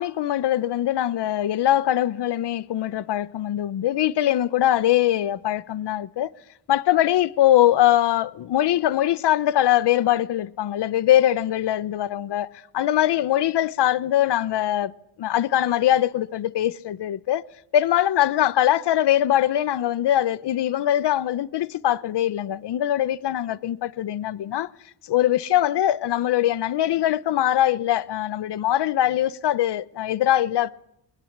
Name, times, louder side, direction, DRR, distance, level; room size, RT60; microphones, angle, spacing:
voice 1, 0.0-6.3 6.7-12.5 12.7-14.9 15.2-17.4 17.7-24.7 25.0-30.7, left 12 dB, 60° left, 0.9 m, -22 dB
22.0 x 20.0 x 7.3 m
wide cardioid pair, 140°, 46 cm